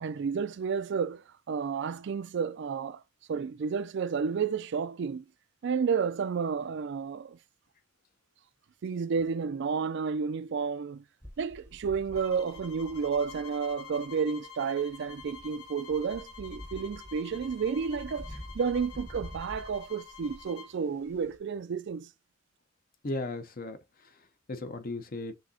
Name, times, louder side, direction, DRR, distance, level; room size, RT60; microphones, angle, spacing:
voice 1, 0.0-3.0 3.3-5.2 5.6-7.4 8.8-11.0 11.4-22.1, right 6 dB, 55° right, 0.4 m, -31 dB
sound 1, 11.2-21.4, left 1 dB, 15° left, 0.9 m, -48 dB
sound 2, 12.1-20.8, left 6 dB, 85° left, 0.6 m, -49 dB
voice 2, 23.0-25.3, left 2 dB, 45° left, 0.7 m, -37 dB
6.2 x 2.8 x 2.7 m
head